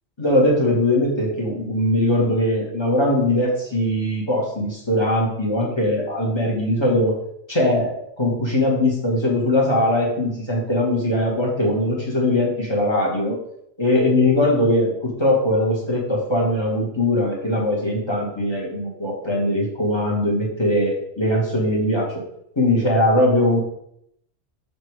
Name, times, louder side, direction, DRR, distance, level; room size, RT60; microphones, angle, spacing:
voice 1, 0.2-7.2 7.5-13.4 13.8-22.2 22.5-23.6, left 1 dB, 20° left, -3 dB, 1.7 m, -20 dB
6.0 x 4.3 x 4.8 m, 0.75 s
omnidirectional pair, 1.3 m